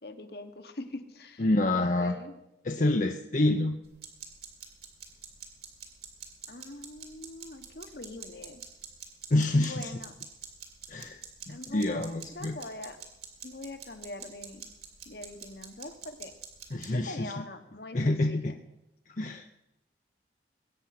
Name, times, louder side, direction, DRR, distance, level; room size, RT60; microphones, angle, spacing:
voice 1, 0.0-1.4 1.7-2.3 3.3-3.6 6.5-8.6 9.5-10.1 11.5-12.0 12.3-13.0 13.4-14.7 15.1-16.3 16.9-18.6, left 2 dB, 60° left, 7 dB, 1.3 m, -43 dB
voice 2, 1.4-2.2 2.6-3.8 9.3-9.9 10.9-11.2 11.5-12.6 16.7-17.3 17.9-18.6 19.2-19.6, left 2 dB, 45° left, 4 dB, 0.7 m, -27 dB
sound 1, 3.8-16.9, right 8 dB, 60° right, 2.6 m, -46 dB
21.5 x 9.0 x 5.9 m, 0.92 s
head